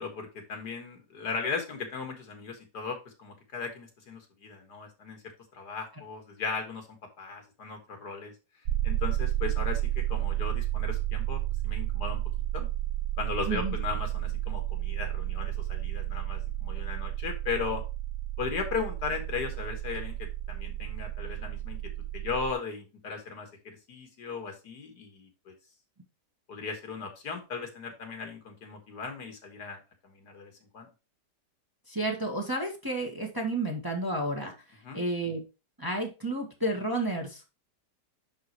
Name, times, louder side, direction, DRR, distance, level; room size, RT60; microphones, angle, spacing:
voice 1, 0.0-5.2 5.5-6.9 7.2-8.3 8.8-12.2 12.5-12.7 13.2-17.8 18.4-25.5 26.5-30.9 34.8-35.0, left 5 dB, 70° left, 5 dB, 2.2 m, -37 dB
sound 1, 8.6-22.5, right 14 dB, 80° right, 1.2 m, -32 dB
voice 2, 31.9-35.4 35.8-37.4, right 2 dB, 15° right, 0 dB, 1.4 m, -31 dB
11.0 x 3.9 x 3.0 m, 0.29 s
omnidirectional pair, 1.9 m